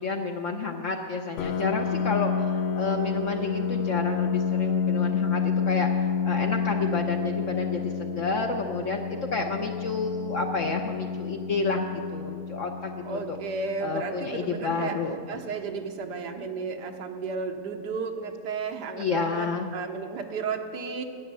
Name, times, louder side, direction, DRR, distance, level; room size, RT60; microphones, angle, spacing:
voice 1, 0.0-13.4 13.8-15.2 19.0-19.7, left 4 dB, 55° left, 2 dB, 1.0 m, -30 dB
Piano, 1.4-16.8, left 6 dB, 85° left, 0.5 m, -30 dB
voice 2, 13.0-15.0 15.3-21.0, right 4 dB, 85° right, 4 dB, 1.5 m, -33 dB
11.0 x 10.5 x 8.2 m, 2.4 s
omnidirectional pair, 1.7 m